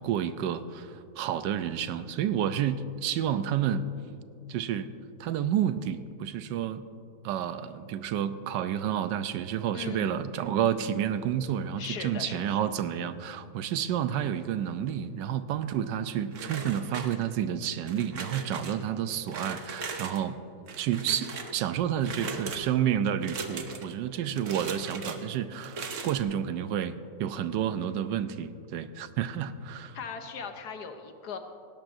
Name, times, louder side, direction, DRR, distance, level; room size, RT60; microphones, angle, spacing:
voice 1, 0.0-3.8 4.5-4.9 5.2-6.8 7.2-20.4 20.8-26.9 27.2-30.0, right 9 dB, 85° right, 12 dB, 1.3 m, -30 dB
voice 2, 9.7-10.3 11.8-12.5 29.9-31.4, left 5 dB, 65° left, 6 dB, 1.4 m, -38 dB
sound 1, 16.3-17.5 17.9-18.8 19.3-20.2 20.7-21.6 22.0-22.6 23.2-23.9 24.3-25.2 25.6-26.2, right 5 dB, 50° right, 1.2 m, -38 dB
19.0 x 17.0 x 2.6 m, 2.5 s
omnidirectional pair, 1.9 m